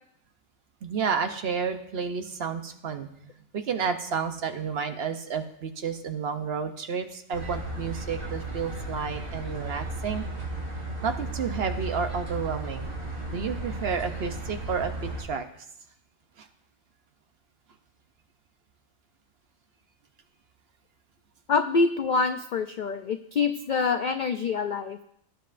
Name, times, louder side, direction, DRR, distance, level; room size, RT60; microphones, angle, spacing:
voice 1, 0.8-3.1 3.5-10.2 11.0-12.9 13.3-15.5 16.4-16.5, right 6 dB, 55° right, 7 dB, 0.9 m, -31 dB
sound 1, 7.3-15.2, right 1 dB, 90° right, 4.0 m, -35 dB
voice 2, 21.5-25.0, left 4 dB, 75° left, 8 dB, 0.4 m, -26 dB
18.0 x 7.7 x 2.5 m, 0.73 s
omnidirectional pair, 1.4 m